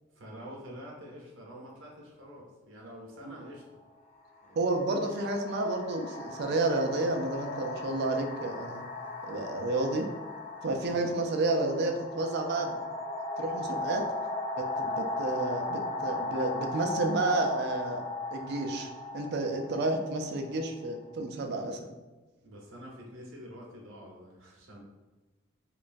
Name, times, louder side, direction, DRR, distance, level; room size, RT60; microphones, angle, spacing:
voice 1, 0.1-3.8 4.4-4.8 10.9-11.1 22.4-24.8, equal, 75° right, -2 dB, 0.8 m, -47 dB
sound 1, 3.2-3.4 4.4-21.0, left 2 dB, 35° left, 0.4 m, -37 dB
voice 2, 4.6-8.8 9.2-10.1 10.6-12.8 13.4-14.0 14.6-21.9, right 2 dB, 55° right, 3 dB, 0.4 m, -31 dB
2.9 x 2.3 x 2.5 m, 1.2 s
head